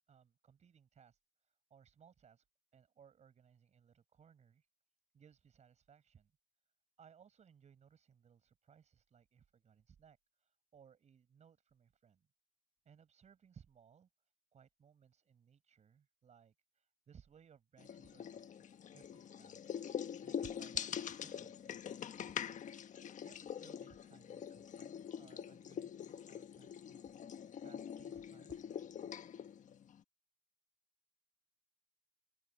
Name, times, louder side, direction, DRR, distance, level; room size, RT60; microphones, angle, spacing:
voice 1, 0.1-1.2 1.7-2.4 2.7-4.7 5.1-6.3 7.0-12.3 12.8-14.1 14.5-18.7 18.9-19.8 20.2-22.6 23.2-27.1 27.6-28.6, right 7 dB, 40° right, 5.7 m, -64 dB
sound 1, 17.8-30.0, left 8 dB, 50° left, 1.3 m, -44 dB
open air
cardioid pair, 110°, 17 cm